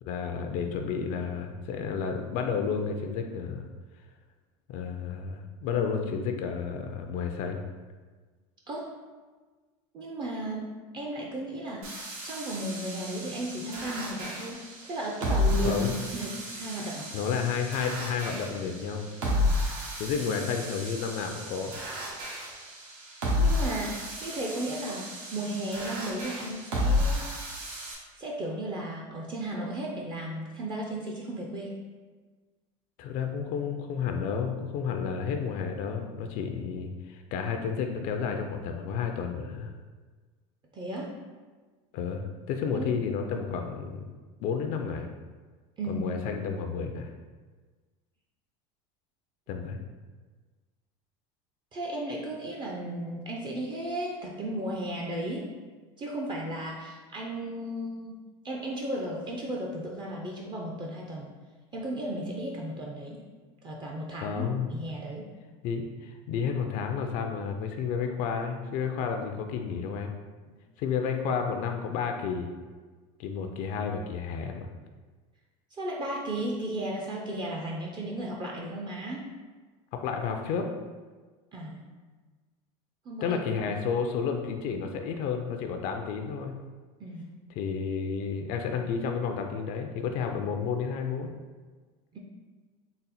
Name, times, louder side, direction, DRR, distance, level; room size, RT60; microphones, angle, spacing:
voice 1, 0.0-3.7 4.7-7.6 15.6-16.0 17.1-19.1 19.9-21.7 33.0-39.7 41.9-44.1 44.4-45.1 45.9-47.1 49.5-49.8 64.1-64.7 65.6-70.1 70.8-72.5 73.2-74.7 79.9-80.7 83.2-86.6 87.5-91.3, left 6 dB, 55° left, 4 dB, 0.4 m, -31 dB
voice 2, 8.7-9.0 9.9-17.1 23.4-27.2 28.1-31.8 40.7-41.2 42.7-42.9 45.8-46.1 51.7-55.5 56.0-58.2 58.4-61.3 61.7-63.2 63.6-64.4 64.7-65.3 75.8-79.3 81.5-81.8 83.1-83.4 87.0-87.3 92.1-92.2, right 1 dB, 25° right, -2 dB, 0.5 m, -35 dB
sound 1, 11.8-27.9, left 1 dB, 80° right, 1.1 m, -32 dB
3.9 x 2.0 x 4.1 m, 1.4 s
supercardioid pair, 125°, 17 cm